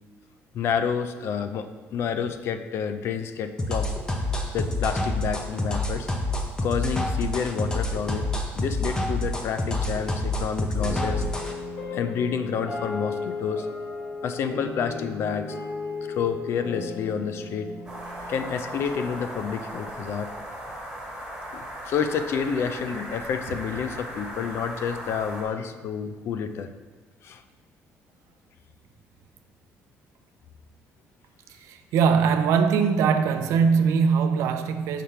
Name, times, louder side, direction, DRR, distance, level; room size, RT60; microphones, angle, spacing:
voice 1, 0.5-3.9 4.5-6.1 6.6-8.3 8.5-11.2 11.9-13.7 14.2-15.6 16.0-17.7 18.3-20.3 21.5-26.7 27.2-27.4, left 7 dB, 55° left, 0.4 m, -29 dB
sound 1, 3.6-11.5, left 1 dB, 15° left, 0.7 m, -27 dB
sound 2, 10.8-19.3, left 3 dB, 85° left, 1.8 m, -35 dB
sound 3, 17.9-25.4, right 1 dB, 10° right, 1.8 m, -38 dB
voice 2, 31.7-35.0, right 6 dB, 80° right, 0.5 m, -21 dB
5.8 x 3.4 x 5.5 m
cardioid pair, 145°, 5 cm